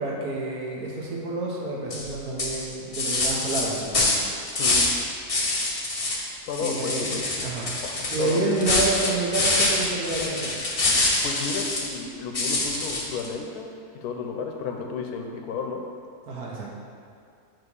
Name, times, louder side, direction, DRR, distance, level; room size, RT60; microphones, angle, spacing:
voice 1, 0.0-4.0 6.6-7.6 8.1-10.6 16.3-16.7, right 2 dB, 70° right, -3 dB, 1.5 m, -29 dB
sound 1, 1.9-2.1 2.4-5.0 5.3-6.2 6.5-11.9 12.3-13.3, left 2 dB, 40° left, 0.5 m, -25 dB
voice 2, 4.6-4.9 6.5-7.2 7.8-8.4 11.2-13.7 14.0-15.8, left 5 dB, 80° left, 3 dB, 1.2 m, -32 dB
7.5 x 3.0 x 5.3 m, 2.3 s
omnidirectional pair, 1.7 m